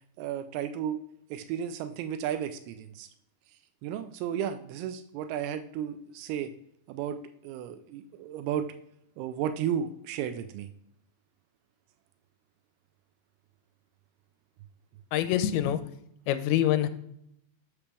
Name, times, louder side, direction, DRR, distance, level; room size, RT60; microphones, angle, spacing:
voice 1, 0.2-1.0 1.3-3.1 3.8-6.5 6.9-8.7 9.2-10.7, right 9 dB, 90° right, 9 dB, 2.5 m, -33 dB
voice 2, 15.1-15.8 16.3-16.9, left 11 dB, 85° left, 11 dB, 2.5 m, -25 dB
8.4 x 3.3 x 6.0 m, 0.75 s
omnidirectional pair, 4.4 m